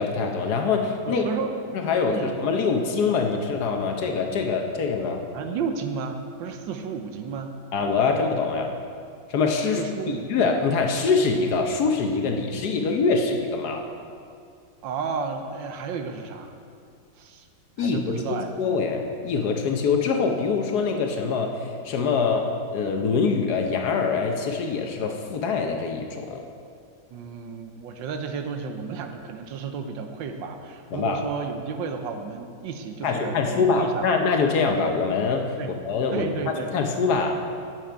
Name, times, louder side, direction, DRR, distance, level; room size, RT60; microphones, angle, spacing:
voice 1, 0.0-1.2 1.7-5.2 7.7-8.7 9.3-9.8 10.3-13.8 17.8-26.4 30.9-31.2 33.0-35.5 35.9-36.3 36.7-37.4, left 4 dB, 65° left, 3 dB, 1.2 m, -24 dB
voice 2, 1.1-1.5 2.1-2.3 5.3-7.6 9.7-10.5 14.8-16.5 17.2-17.5 17.8-18.5 27.1-34.1 35.6-35.7 36.1-36.7, right 5 dB, 80° right, 6 dB, 1.4 m, -32 dB
10.5 x 7.7 x 4.5 m, 2.3 s
omnidirectional pair, 2.1 m